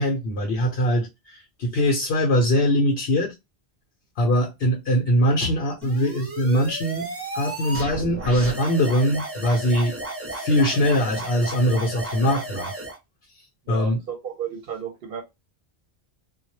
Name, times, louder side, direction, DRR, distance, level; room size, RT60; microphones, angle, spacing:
voice 1, 0.0-3.3 4.2-7.1 7.3-9.9 10.3-12.7 13.7-14.0, equal, 70° left, 0.8 m, -22 dB
sound 1, 5.8-13.0, right 1 dB, 25° right, 0.3 m, -33 dB
voice 2, 13.7-15.2, right 7 dB, 65° right, 0.7 m, -33 dB
2.2 x 2.0 x 2.9 m
omnidirectional pair, 1.1 m